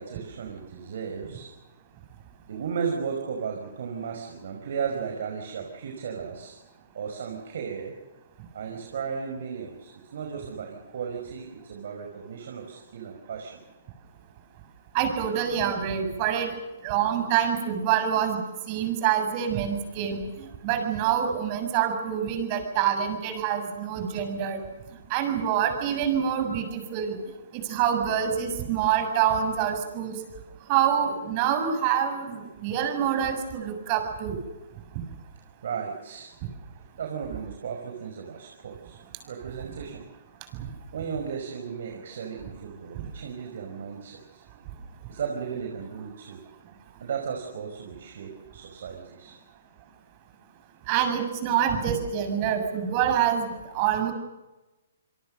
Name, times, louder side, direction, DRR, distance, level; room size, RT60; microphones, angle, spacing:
voice 1, 0.0-1.5 2.5-6.6 6.9-7.9 8.5-13.6 35.6-36.3 37.0-39.0 39.3-40.0 40.9-44.4 45.1-46.4 47.0-49.4, right 6 dB, 65° right, 2 dB, 5.3 m, -35 dB
voice 2, 14.9-16.5 16.8-24.6 25.1-27.2 27.5-30.2 30.7-34.4 40.6-40.7 43.0-43.1 50.9-54.1, right 9 dB, 35° right, 7 dB, 6.9 m, -26 dB
28.0 x 23.0 x 6.7 m, 1.1 s
hypercardioid pair, 140°, 0 cm